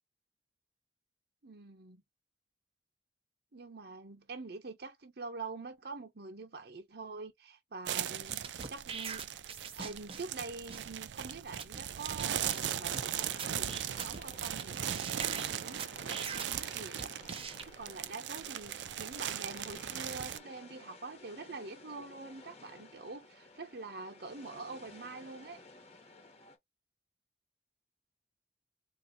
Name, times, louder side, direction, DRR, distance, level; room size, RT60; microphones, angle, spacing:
voice 1, 1.4-2.0 3.5-9.3 9.7-17.1 17.6-25.6, right 3 dB, 65° right, 1.0 m, -45 dB
sound 1, 7.9-20.4, right 10 dB, 85° right, 0.4 m, -38 dB
sound 2, 8.3-10.4 10.7-10.8 11.3-11.4 11.6-11.8 12.2-12.3 12.5-13.0 13.4-14.6 14.9-16.6 17.0-17.6, right 5 dB, 35° right, 0.7 m, -42 dB
sound 3, 12.2-26.6, left 2 dB, 35° left, 1.2 m, -55 dB
4.1 x 2.6 x 3.7 m
head